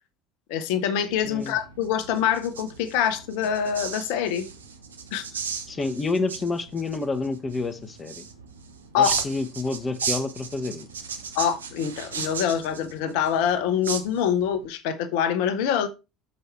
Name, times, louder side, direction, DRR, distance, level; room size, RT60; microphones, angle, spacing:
voice 1, 0.5-4.5 5.1-5.2 8.9-9.2 11.3-15.9, left 8 dB, 60° left, 0.9 m, -25 dB
sound 1, 1.1-14.6, right 6 dB, 80° right, 0.8 m, -36 dB
voice 2, 1.2-1.6 5.7-8.2 9.0-10.9, left 3 dB, 25° left, 1.0 m, -29 dB
6.7 x 5.1 x 4.5 m
figure-of-eight pair, 65°, 0 cm